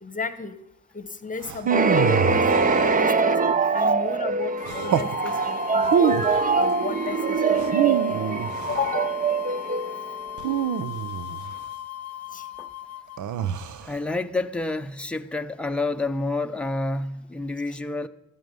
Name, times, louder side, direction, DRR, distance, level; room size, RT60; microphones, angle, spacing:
voice 1, 0.0-0.5 0.9-2.4 2.7-3.4 3.7-6.3 6.5-8.2 8.7-9.1 12.3-12.4, left 5 dB, 25° left, 1.1 m, -34 dB
sound 1, 1.4-3.4 4.7-5.2 5.8-6.5 7.5-8.9 10.4-11.6 13.2-13.9, right 8 dB, 75° right, 0.9 m, -26 dB
sound 2, 1.7-10.4, right 4 dB, 25° right, 0.8 m, -23 dB
sound 3, 4.6-13.2, left 11 dB, 55° left, 0.7 m, -37 dB
voice 2, 13.8-18.1, left 2 dB, 5° left, 0.7 m, -29 dB
14.0 x 12.5 x 5.4 m
cardioid pair, 90°, 30 cm